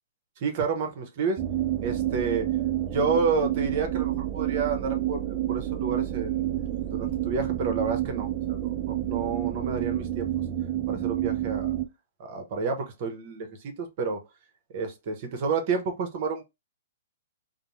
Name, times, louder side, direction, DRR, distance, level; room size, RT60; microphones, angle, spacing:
voice 1, 0.4-1.4 1.8-2.5 2.8-10.3 10.9-11.7 12.2-14.2 14.7-16.4, right 4 dB, 45° right, 0.8 m, -30 dB
sound 1, 1.4-11.9, right 13 dB, 30° right, 0.4 m, -29 dB
2.5 x 2.0 x 3.0 m
hypercardioid pair, 130°, 0 cm